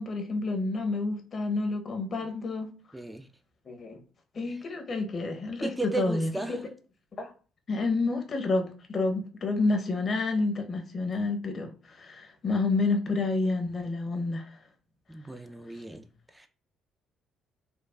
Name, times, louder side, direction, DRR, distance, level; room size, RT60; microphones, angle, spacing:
voice 1, 0.0-2.7 3.7-4.0 4.3-5.7 6.0-6.6 7.2-7.3 7.7-14.6, left 3 dB, 45° left, 0.8 m, -29 dB
voice 2, 2.9-3.3 4.5-4.6 5.6-6.6 15.1-16.5, right 2 dB, 10° right, 0.4 m, -35 dB
4.3 x 2.3 x 2.3 m
hypercardioid pair, 50°, 0 cm